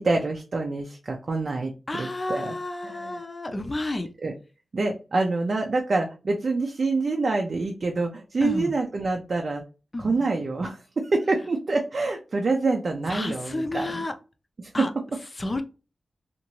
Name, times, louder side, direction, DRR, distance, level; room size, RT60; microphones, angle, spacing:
voice 1, 0.0-2.6 2.8-3.2 4.2-4.3 4.7-9.6 10.0-14.0 14.6-14.9, right 3 dB, 55° right, 2 dB, 0.4 m, -26 dB
voice 2, 1.9-4.1 8.4-8.7 9.9-10.3 13.1-14.1 14.7-14.9 15.4-15.6, left 2 dB, 30° left, 7 dB, 0.5 m, -31 dB
2.8 x 2.5 x 2.9 m, 0.33 s
cardioid pair, 65°, 0 cm